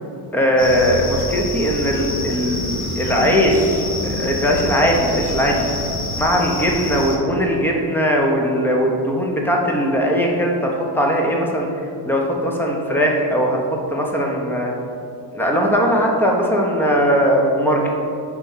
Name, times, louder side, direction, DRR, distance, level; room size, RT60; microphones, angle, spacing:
voice 1, 0.3-5.7 6.2-11.7 12.1-14.7 15.3-17.9, equal, 5° left, 0 dB, 0.7 m, -19 dB
sound 1, 0.6-7.2, left 1 dB, 30° left, 1.1 m, -27 dB
4.7 x 4.4 x 5.5 m, 2.4 s
cardioid pair, 135°, 40 cm